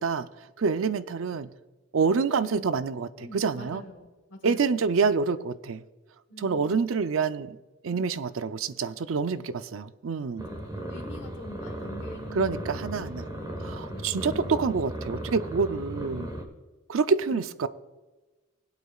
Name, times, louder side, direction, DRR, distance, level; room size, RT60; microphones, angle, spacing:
voice 1, 0.0-1.5 1.9-3.1 3.3-3.8 4.4-5.8 6.4-7.6 7.8-10.5 12.3-13.3 13.6-16.3 16.9-17.7, right 5 dB, 75° right, 0.5 m, -27 dB
voice 2, 2.3-2.7 3.2-4.8 6.3-6.8 10.5-13.1 13.3-15.0 15.5-16.0 17.2-17.4, equal, 60° left, 1.3 m, -46 dB
sound 1, 10.4-16.4, right 1 dB, 20° right, 1.3 m, -36 dB
20.5 x 8.3 x 2.4 m
head